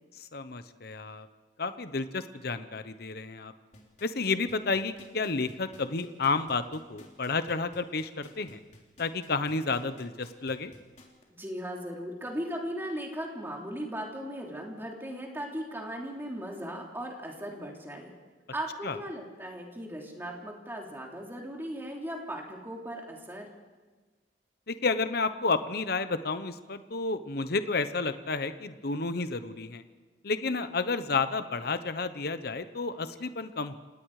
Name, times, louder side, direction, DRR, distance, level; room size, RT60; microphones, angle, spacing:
voice 1, 0.3-1.3 1.6-3.5 4.0-8.6 9.0-10.7 18.8-19.0 24.7-29.8 30.2-33.8, left 4 dB, 55° left, 11 dB, 1.0 m, -31 dB
sound 1, 3.7-11.2 11.7-11.8, left 2 dB, 40° left, 3.9 m, -54 dB
voice 2, 11.3-18.1 18.5-23.5, equal, 10° right, 0 dB, 3.2 m, -37 dB
30.0 x 18.0 x 4.9 m, 1.4 s
head